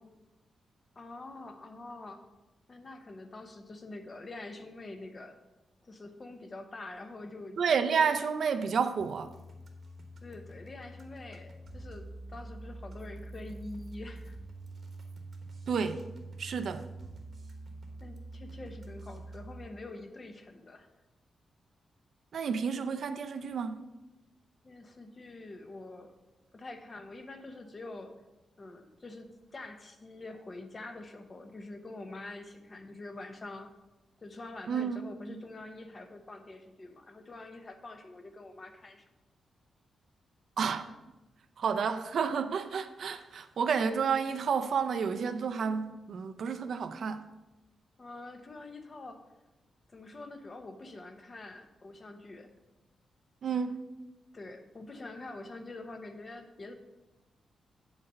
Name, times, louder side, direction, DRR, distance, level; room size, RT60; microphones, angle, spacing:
voice 1, 1.0-2.3 2.7-5.4 5.8-7.6 10.2-14.4 18.0-20.9 24.6-26.2 26.5-28.1 28.6-33.7 34.2-39.0 48.0-49.3 49.9-52.5 54.3-56.8, left 2 dB, 25° left, 7 dB, 0.8 m, -45 dB
voice 2, 7.6-9.3 15.7-16.0 16.4-16.9 22.3-23.8 34.7-35.0 40.6-40.9 41.6-47.3 53.4-53.8, right 6 dB, 55° right, 8 dB, 0.6 m, -30 dB
sound 1, 9.0-19.7, right 2 dB, 40° right, 1.1 m, -46 dB
8.0 x 4.3 x 6.7 m, 1.0 s
wide cardioid pair, 160°, 0 cm